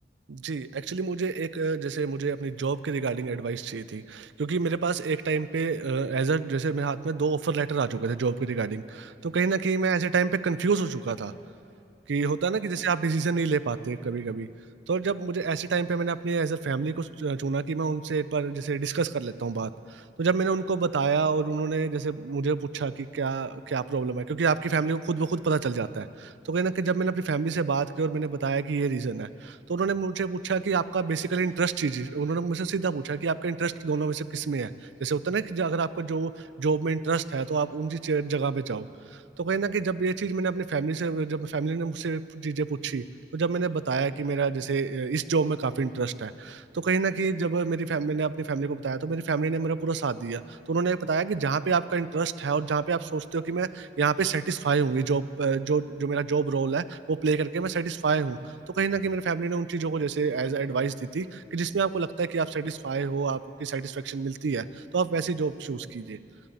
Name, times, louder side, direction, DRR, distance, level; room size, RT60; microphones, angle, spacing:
voice 1, 0.3-11.3 12.1-14.5 14.9-34.7 35.0-36.3 36.6-38.9 39.4-43.0 43.3-58.4 58.8-64.6 64.9-66.2, right 4 dB, 85° right, 15 dB, 0.5 m, -28 dB
12.0 x 12.0 x 9.6 m, 2.5 s
head